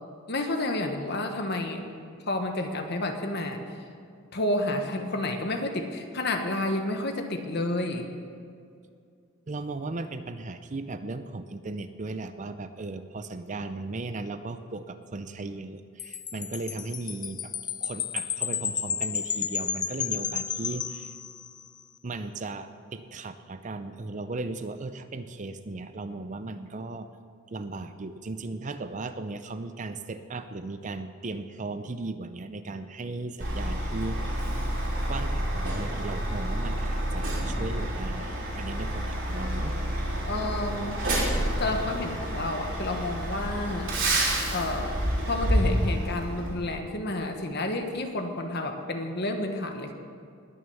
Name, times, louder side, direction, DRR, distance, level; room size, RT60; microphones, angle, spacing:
voice 1, 0.3-1.9 2.3-3.6 4.3-8.1 40.2-41.0 41.6-43.9 44.5-45.0 45.3-49.9, left 2 dB, 50° left, 5 dB, 1.3 m, -30 dB
voice 2, 9.5-17.5 17.8-21.1 22.0-27.1 27.5-34.2 35.1-39.7, right 3 dB, 35° right, 10 dB, 0.5 m, -36 dB
Wind chime, 16.0-21.7, left 7 dB, 20° left, 0.3 m, -32 dB
Truck, 33.4-46.5, right 1 dB, 65° right, 3.5 m, -29 dB
19.5 x 6.6 x 7.1 m, 2.3 s
head